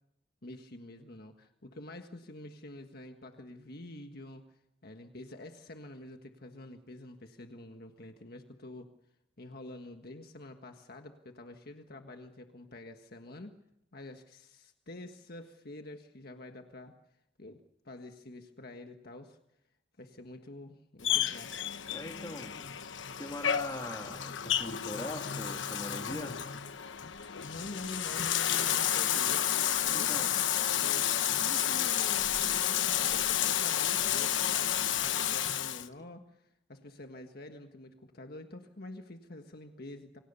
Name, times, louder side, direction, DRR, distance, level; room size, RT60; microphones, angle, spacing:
voice 1, 0.4-4.4 4.8-8.9 9.4-13.5 13.9-16.9 17.4-19.4 20.0-21.6 27.4-29.5 29.8-40.2, left 1 dB, 55° left, 5 dB, 1.6 m, -47 dB
Bathtub (filling or washing), 21.0-35.9, left 10 dB, 80° left, 1.1 m, -31 dB
voice 2, 21.9-22.7 23.1-26.4 29.9-30.3, left 1 dB, 20° left, 3 dB, 2.9 m, -41 dB
27.5 x 25.0 x 5.6 m, 0.82 s
head